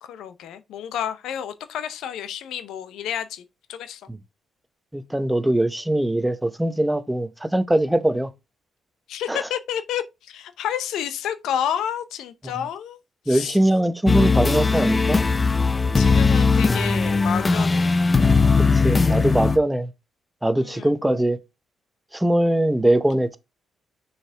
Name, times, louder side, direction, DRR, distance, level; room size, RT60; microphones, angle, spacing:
voice 1, 0.0-3.4 3.7-4.0 9.1-13.0 13.3-13.6 16.0-18.0 20.6-20.9, left 9 dB, 80° left, 0.7 m, -30 dB
voice 2, 4.9-8.3 9.3-9.4 13.3-15.2 18.6-19.9 20.4-21.4 22.1-23.4, right 1 dB, 5° right, 0.8 m, -21 dB
sound 1, 14.1-19.6, left 4 dB, 25° left, 0.5 m, -19 dB
6.1 x 4.8 x 3.4 m
cardioid pair, 90°, 0 cm